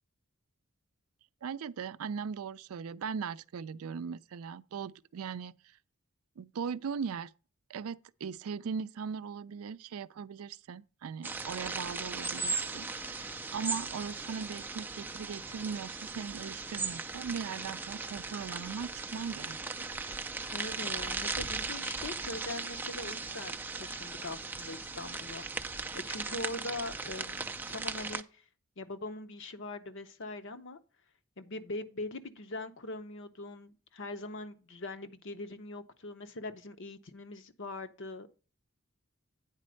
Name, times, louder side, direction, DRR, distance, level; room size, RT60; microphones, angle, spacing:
voice 1, 1.4-5.6 6.4-7.3 7.7-13.2 13.5-19.6, right 6 dB, 80° right, 0.4 m, -39 dB
sound 1, 11.2-28.2, right 4 dB, 10° right, 0.3 m, -38 dB
voice 2, 20.5-28.4 28.8-30.8 31.4-38.4, left 2 dB, 60° left, 0.8 m, -42 dB
9.0 x 4.3 x 6.2 m
head